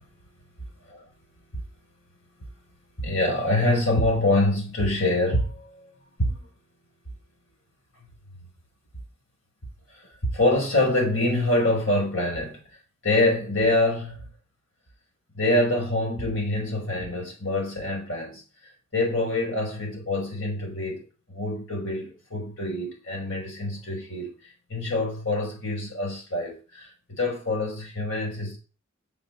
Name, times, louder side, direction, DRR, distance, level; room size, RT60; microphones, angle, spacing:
voice 1, 3.0-5.9 6.2-6.4 9.9-12.6 13.0-14.3 15.3-18.4 18.9-21.0 21.3-24.3 24.7-28.6, left 1 dB, 85° left, 5.4 m, -25 dB
7.4 x 6.2 x 7.4 m
head